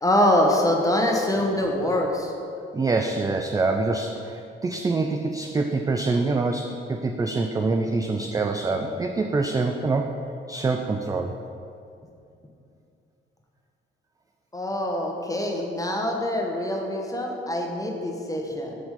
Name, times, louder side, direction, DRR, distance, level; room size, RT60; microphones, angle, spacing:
voice 1, 0.0-2.3 14.5-18.7, left 1 dB, 10° left, 1 dB, 1.2 m, -24 dB
voice 2, 2.7-10.1 10.5-11.3, right 3 dB, 15° right, 4 dB, 0.4 m, -25 dB
5.9 x 5.1 x 5.6 m, 2.5 s
figure-of-eight pair, 40°, 29 cm